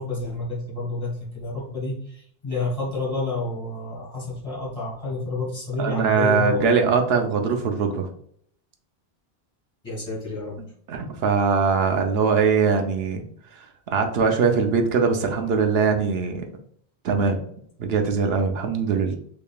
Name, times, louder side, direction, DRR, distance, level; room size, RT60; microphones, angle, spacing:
voice 1, 0.0-6.6 9.8-10.6, left 2 dB, 35° left, -6 dB, 1.7 m, -29 dB
voice 2, 5.8-8.1 10.9-13.2 13.9-16.4 17.0-17.4 17.8-19.2, right 5 dB, 75° right, 4 dB, 0.8 m, -21 dB
3.6 x 3.4 x 2.3 m, 0.63 s
omnidirectional pair, 1.1 m